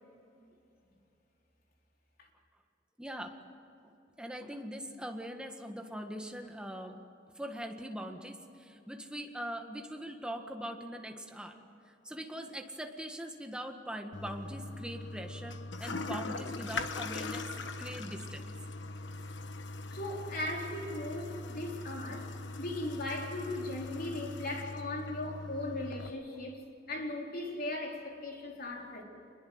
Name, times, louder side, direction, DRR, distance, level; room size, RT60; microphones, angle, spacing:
voice 1, 3.0-3.4 3.8-7.0 7.4-11.6 11.8-17.5 17.8-18.5 22.1-22.2, equal, 5° right, 1.7 m, -42 dB
Toilet flush, 14.1-26.1, left 3 dB, 70° left, 1.3 m, -41 dB
voice 2, 19.9-29.0, left 1 dB, 55° left, 4.1 m, -38 dB
26.5 x 21.5 x 7.9 m
head